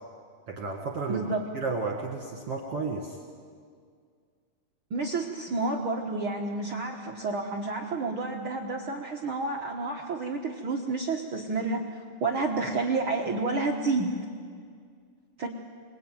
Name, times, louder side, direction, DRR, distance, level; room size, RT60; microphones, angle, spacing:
voice 1, 0.5-1.2 1.5-3.2, right 4 dB, 45° right, 1 dB, 2.3 m, -32 dB
voice 2, 1.1-1.4 4.9-14.1 15.4-15.5, right 3 dB, 80° right, 1 dB, 1.1 m, -30 dB
27.5 x 21.5 x 9.1 m, 2.1 s
omnidirectional pair, 4.8 m